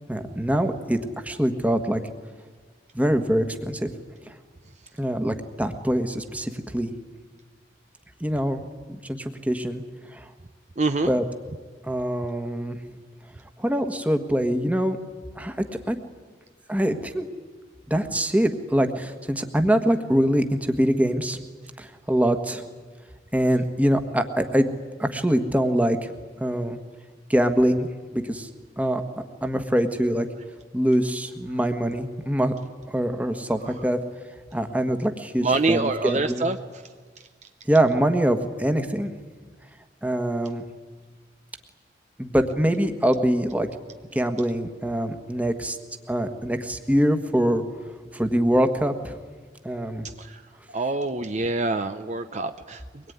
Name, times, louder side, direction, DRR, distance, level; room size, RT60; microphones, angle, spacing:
voice 1, 0.1-1.0 1.2-2.0 2.9-3.9 4.3-4.4 5.0-6.9 8.2-8.6 8.9-9.8 10.1-10.3 11.1-11.2 11.8-12.8 13.6-15.0 15.4-16.0 16.7-17.3 17.9-21.4 21.8-22.6 23.3-24.7 25.0-26.1 26.4-26.8 27.3-27.9 28.1-28.5 28.8-29.0 29.4-30.3 30.7-32.5 32.9-34.0 34.5-36.5 37.7-39.1 40.0-40.6 42.2-43.7 44.1-45.8 46.1-47.6 48.1-49.1 49.6-50.1, equal, 10° right, 7 dB, 1.5 m, -24 dB
voice 2, 10.8-11.1 33.6-33.7 35.4-36.6 50.2-50.4 50.7-53.1, right 3 dB, 40° right, 8 dB, 0.7 m, -26 dB
24.0 x 21.5 x 9.5 m, 1.5 s
head